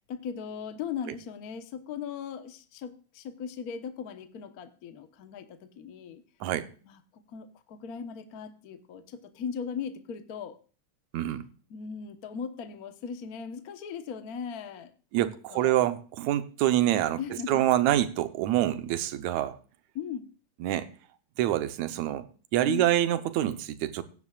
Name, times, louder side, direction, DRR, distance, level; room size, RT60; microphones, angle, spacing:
voice 1, 0.1-6.2 6.8-7.0 7.3-10.6 11.7-15.8 17.2-17.6 19.9-20.3 22.6-22.9, left 7 dB, 75° left, 9 dB, 0.8 m, -38 dB
voice 2, 11.1-11.4 15.1-17.2 17.5-19.6 20.6-20.9 21.4-22.3 22.5-24.0, right 13 dB, 75° right, 11 dB, 2.1 m, -26 dB
16.5 x 9.6 x 2.4 m, 0.38 s
omnidirectional pair, 3.3 m